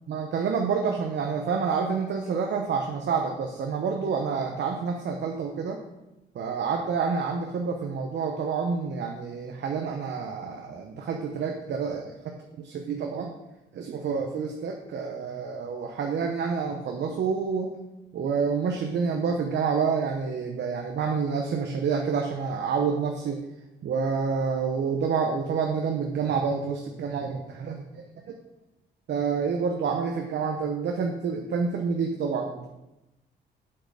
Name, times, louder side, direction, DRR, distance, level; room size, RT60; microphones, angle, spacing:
voice 1, 0.1-5.8 6.3-12.1 12.6-13.3 13.7-17.8 18.1-23.4 23.8-28.4 29.1-32.7, right 5 dB, 60° right, 2 dB, 1.0 m, -28 dB
6.5 x 5.8 x 6.4 m, 0.97 s
cardioid pair, 90°, 20 cm